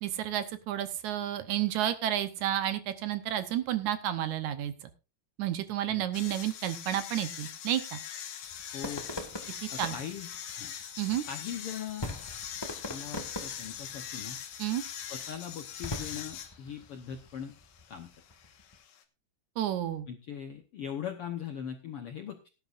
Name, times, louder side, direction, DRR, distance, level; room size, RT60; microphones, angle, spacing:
voice 1, 0.0-4.9 5.4-8.0 9.6-10.0 11.0-11.2 14.6-14.8 19.6-20.1, right 12 dB, 70° right, 11 dB, 2.1 m, -31 dB
sound 1, 6.1-19.0, left 9 dB, 90° left, 3.1 m, -42 dB
sound 2, 8.4-18.8, left 1 dB, 25° left, 0.6 m, -44 dB
voice 2, 8.7-9.0 9.7-10.3 10.6-10.7 11.3-12.1 12.9-14.4 15.1-17.5 17.9-18.1 20.1-22.5, left 8 dB, 70° left, 6 dB, 1.3 m, -40 dB
18.0 x 10.5 x 2.5 m, 0.31 s
omnidirectional pair, 3.8 m